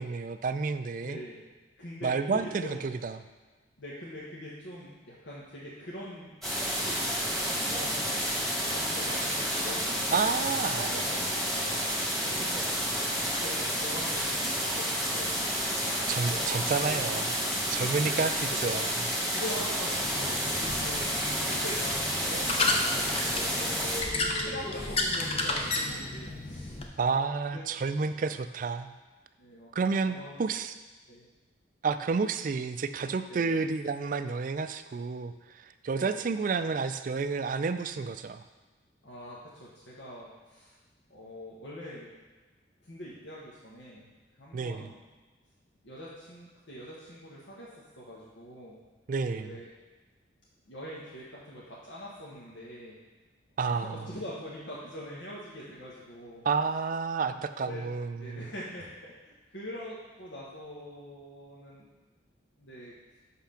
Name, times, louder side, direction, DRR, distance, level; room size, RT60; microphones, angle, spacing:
voice 1, 0.0-1.2 2.0-3.2 10.1-10.9 16.1-17.4 17.7-18.9 27.0-28.9 29.8-30.7 31.8-35.3 35.8-38.4 44.5-44.8 49.1-49.6 53.6-54.1 56.4-58.5, right 4 dB, 45° right, 11 dB, 0.3 m, -30 dB
voice 2, 1.0-1.4 1.8-2.8 3.8-6.5 6.8-8.2 8.6-10.5 10.8-11.8 12.2-15.9 16.2-17.0 17.6-18.8 19.3-21.1 21.5-23.8 24.1-27.2 27.5-27.6 28.2-28.3 29.4-29.7 30.1-30.4 31.1-31.3 33.3-33.6 35.9-36.3 39.0-40.7 41.1-42.2 42.8-44.1 44.4-45.0 45.8-48.8 49.3-49.7 50.7-53.0 53.6-56.5 57.2-61.9 62.6-62.9, equal, 85° left, -7 dB, 1.3 m, -44 dB
sound 1, 6.4-24.0, equal, ahead, 1.4 m, -30 dB
sound 2, 19.9-26.9, left 2 dB, 30° left, 0.7 m, -32 dB
5.9 x 5.8 x 5.8 m, 1.3 s
head